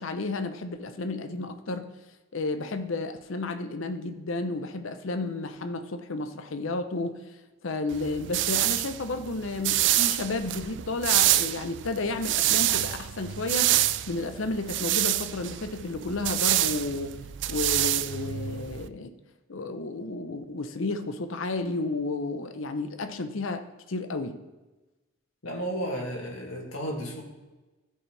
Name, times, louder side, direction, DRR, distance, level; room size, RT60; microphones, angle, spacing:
voice 1, 0.0-1.9 2.3-7.2 7.6-13.7 14.1-17.2 17.5-19.1 19.5-24.4, left 3 dB, 70° left, 9 dB, 0.7 m, -32 dB
sound 1, 7.9-18.9, right 14 dB, 60° right, 0.3 m, -27 dB
voice 2, 25.4-27.2, equal, 90° left, 0 dB, 2.1 m, -33 dB
14.5 x 5.5 x 3.3 m, 1.1 s
head